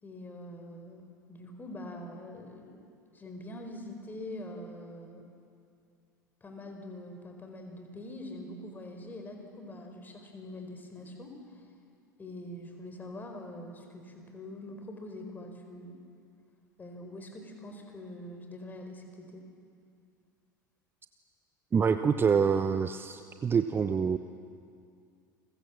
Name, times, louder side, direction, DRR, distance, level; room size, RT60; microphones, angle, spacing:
voice 1, 0.0-2.8 3.1-5.2 6.4-11.3 12.2-16.0 16.8-19.5, left 1 dB, 20° left, 4 dB, 4.7 m, -44 dB
voice 2, 21.7-24.2, right 6 dB, 20° right, 10 dB, 0.9 m, -26 dB
30.0 x 23.0 x 7.3 m, 2.4 s
figure-of-eight pair, 75°, 10 cm